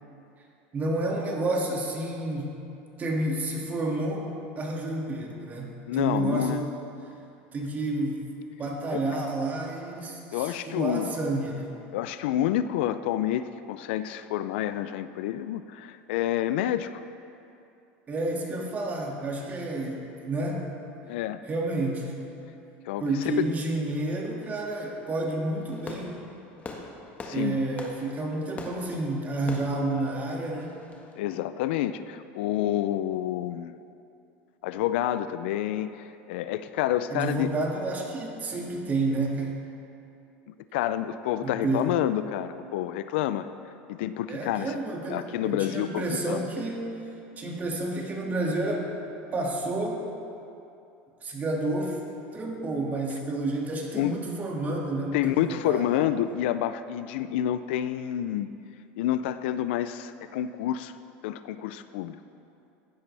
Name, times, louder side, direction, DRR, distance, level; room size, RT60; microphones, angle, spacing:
voice 1, 0.7-2.5 3.0-4.3 4.6-6.8 7.5-8.2 8.6-11.7 18.1-20.8 21.5-22.2 23.0-26.2 27.3-30.7 37.1-39.5 41.4-41.9 44.3-47.0 47.4-48.9 49.3-50.1 51.2-52.0 52.3-56.0, right 2 dB, 30° right, -1 dB, 2.1 m, -30 dB
voice 2, 5.9-6.6 8.9-9.0 10.3-11.2 11.9-17.0 21.1-21.4 22.9-23.5 27.2-27.6 31.2-33.7 34.6-37.5 40.5-43.5 43.9-44.8 45.1-46.5 54.0-54.2 55.1-58.5 59.0-60.9 61.2-62.2, left 12 dB, 80° left, 12 dB, 0.4 m, -28 dB
Fireworks, 25.5-31.2, left 3 dB, 25° left, 1.4 m, -43 dB
15.0 x 10.5 x 3.4 m, 2.7 s
supercardioid pair, 115°, 6 cm